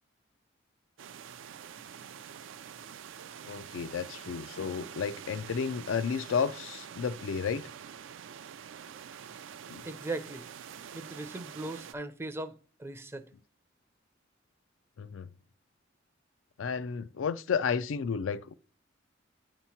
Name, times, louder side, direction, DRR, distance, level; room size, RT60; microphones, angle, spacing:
sound 1, 1.0-11.9, right 8 dB, 70° right, 0.4 m, -46 dB
voice 1, 3.5-7.7 9.7-9.8 15.0-15.3 16.6-18.5, left 6 dB, 80° left, 0.4 m, -32 dB
voice 2, 9.8-10.4 10.9-13.2, right 2 dB, 15° right, 0.5 m, -39 dB
8.7 x 2.9 x 5.7 m
head